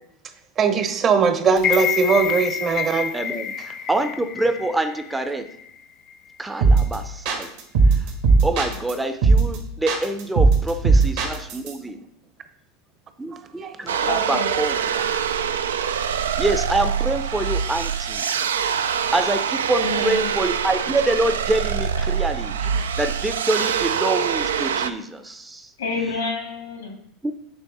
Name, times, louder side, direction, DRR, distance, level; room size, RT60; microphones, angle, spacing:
voice 1, 0.6-3.1 13.6-13.7, right 5 dB, 35° right, 9 dB, 0.8 m, -20 dB
sound 1, 1.6-5.7 6.1-6.2, left 9 dB, 45° left, 0.6 m, -28 dB
voice 2, 3.1-5.5 6.4-7.5 8.4-12.0 13.2-15.0 16.4-18.3 18.7-25.7 27.2-27.3, right 1 dB, 10° right, 8 dB, 0.5 m, -26 dB
sound 2, 6.6-6.9 7.2-8.9 9.2-9.6 9.9-11.7, right 4 dB, 65° right, 1.5 m, -17 dB
voice 3, 13.9-14.5 19.8-20.3 25.8-27.0, left 3 dB, 85° left, 2 dB, 1.8 m, -28 dB
sound 3, 13.9-24.9, right 7 dB, 80° right, 0.3 m, -24 dB
8.1 x 3.5 x 4.0 m, 0.71 s
hypercardioid pair, 90°, 0 cm